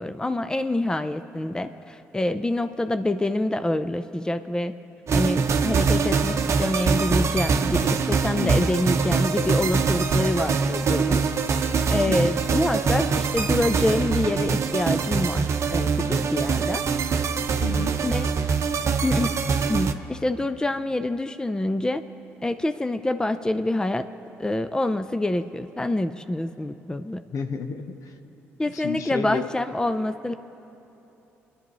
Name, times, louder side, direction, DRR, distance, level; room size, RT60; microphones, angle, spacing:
voice 1, 0.0-4.7 5.1-11.2 11.6-16.8 18.0-18.3 19.0-19.4 19.7-22.0 22.4-24.1 24.4-27.2 28.6-30.3, left 1 dB, 10° left, 10 dB, 0.5 m, -26 dB
sound 1, 5.1-19.9, right 5 dB, 50° right, 0.8 m, -23 dB
voice 2, 17.6-18.0 27.3-28.2 28.7-29.5, left 6 dB, 60° left, 7 dB, 0.9 m, -32 dB
24.5 x 11.0 x 3.1 m, 3.0 s
hypercardioid pair, 55°, 6 cm